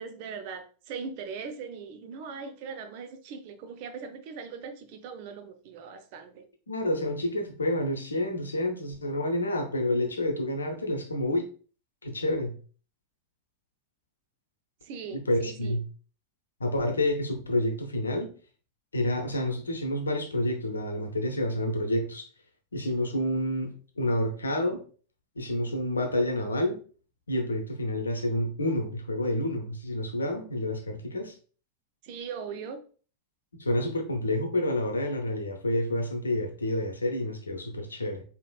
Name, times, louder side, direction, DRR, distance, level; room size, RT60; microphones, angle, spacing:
voice 1, 0.0-6.4 14.8-15.8 32.0-32.8, right 5 dB, 45° right, 0.5 m, -40 dB
voice 2, 6.7-11.5 12.0-12.5 15.1-15.8 16.6-18.3 18.9-22.3 22.7-24.8 25.4-26.8 27.3-31.3 33.6-38.2, left 1 dB, 75° left, 0.7 m, -29 dB
4.9 x 2.9 x 2.3 m
figure-of-eight pair, 90°, 0 cm